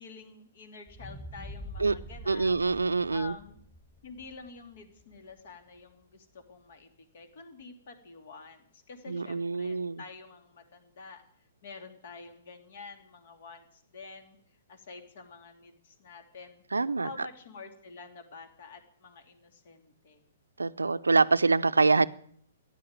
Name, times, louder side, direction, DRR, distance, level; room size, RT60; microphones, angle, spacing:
voice 1, 0.0-2.5 3.1-3.6 4.0-11.2 11.6-16.6 17.0-20.3, left 4 dB, 55° left, 7 dB, 2.9 m, -48 dB
sound 1, 0.9-5.1 5.6-5.7, left 1 dB, 15° left, 2.5 m, -45 dB
voice 2, 2.3-3.3 9.1-10.0 16.7-17.1 20.6-22.1, right 3 dB, 80° right, 15 dB, 0.6 m, -25 dB
14.5 x 10.0 x 8.8 m, 0.63 s
figure-of-eight pair, 120°, 0 cm